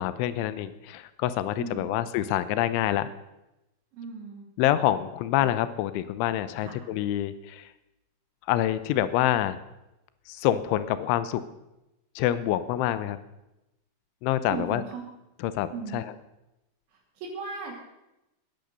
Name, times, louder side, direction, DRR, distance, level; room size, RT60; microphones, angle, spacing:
voice 1, 0.0-3.1 4.6-7.7 8.5-9.6 10.3-11.4 12.2-13.2 14.2-14.8 15.4-16.1, left 13 dB, 85° left, 14 dB, 3.2 m, -26 dB
voice 2, 1.6-2.0 3.9-4.5 5.4-5.5 6.6-6.8 14.5-15.1 15.7-16.0 17.1-17.9, right 5 dB, 70° right, -5 dB, 5.0 m, -37 dB
19.0 x 10.5 x 6.8 m, 0.93 s
omnidirectional pair, 5.4 m